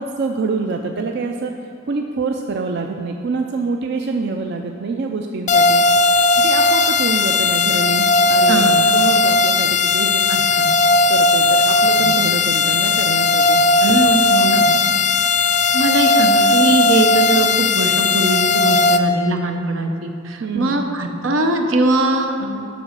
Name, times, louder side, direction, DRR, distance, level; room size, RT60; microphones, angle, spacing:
voice 1, 0.0-1.5 1.9-5.9 6.4-10.2 11.1-13.7 20.4-20.8, right 4 dB, 60° right, 3 dB, 0.4 m, -25 dB
sound 1, 5.5-19.0, left 3 dB, 40° left, 0.4 m, -16 dB
voice 2, 8.5-8.8 10.3-10.7 12.0-12.2 13.8-14.7 15.7-22.7, right 2 dB, 85° right, 5 dB, 0.8 m, -21 dB
7.7 x 5.3 x 6.6 m, 2.6 s
head